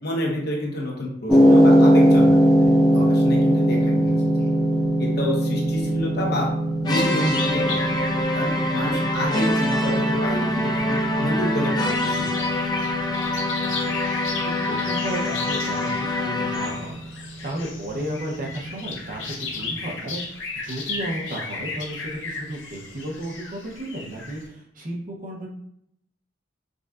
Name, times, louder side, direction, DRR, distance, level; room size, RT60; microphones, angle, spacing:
voice 1, 0.0-4.1 4.4-4.5 5.0-6.5 6.8-12.5, left 1 dB, 60° left, -2 dB, 1.0 m, -29 dB
sound 1, 1.3-19.5, equal, ahead, 0.8 m, -22 dB
sound 2, 6.8-17.0, left 1 dB, 20° left, 0.3 m, -25 dB
sound 3, 7.1-24.4, left 4 dB, 80° left, 0.8 m, -35 dB
voice 2, 13.7-25.5, right 1 dB, 45° right, -1 dB, 0.8 m, -34 dB
5.0 x 2.3 x 2.4 m, 0.71 s
head